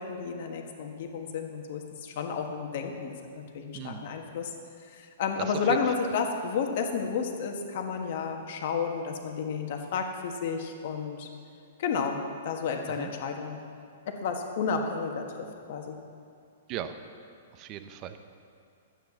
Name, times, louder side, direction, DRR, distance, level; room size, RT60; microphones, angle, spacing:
voice 1, 0.0-4.5 4.9-11.3 11.8-13.6 14.1-16.0, left 5 dB, 50° left, 3 dB, 1.5 m, -32 dB
voice 2, 3.7-4.1 5.4-6.1 12.9-13.1 16.7-16.9 17.5-18.2, right 10 dB, 25° right, 9 dB, 0.7 m, -38 dB
12.5 x 8.9 x 7.2 m, 2.4 s
hypercardioid pair, 165°, 0 cm